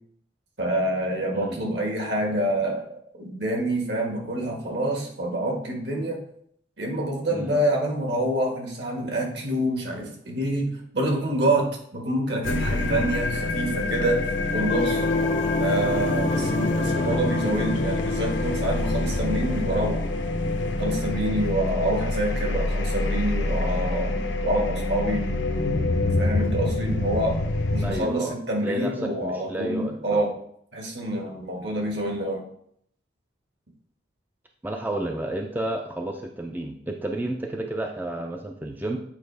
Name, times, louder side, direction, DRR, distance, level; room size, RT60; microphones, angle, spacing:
voice 1, 0.6-2.9 3.2-6.2 6.8-14.2 14.5-15.0 15.6-20.1 20.8-25.2 26.2-27.4 27.7-30.3 30.7-32.4, right 1 dB, 65° right, 1 dB, 1.7 m, -27 dB
sound 1, 12.4-28.0, left 2 dB, 80° left, 0.8 m, -26 dB
sound 2, 14.7-20.5, left 3 dB, 35° left, 0.6 m, -30 dB
voice 2, 16.8-17.2 27.8-28.4 28.6-30.2 34.6-39.0, right 1 dB, 10° right, 3 dB, 0.4 m, -31 dB
8.4 x 4.6 x 3.4 m, 0.68 s
head